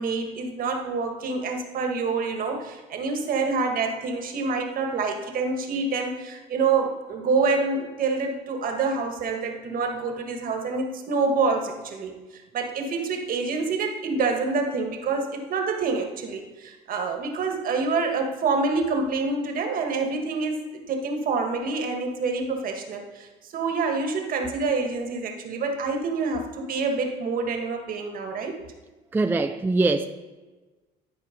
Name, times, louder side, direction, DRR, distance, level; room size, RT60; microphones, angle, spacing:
voice 1, 0.0-28.5, right 4 dB, 55° right, 4 dB, 1.5 m, -27 dB
voice 2, 29.1-30.1, right 3 dB, 10° right, 8 dB, 0.4 m, -22 dB
11.5 x 4.5 x 5.1 m, 1.2 s
cardioid pair, 110°, 17 cm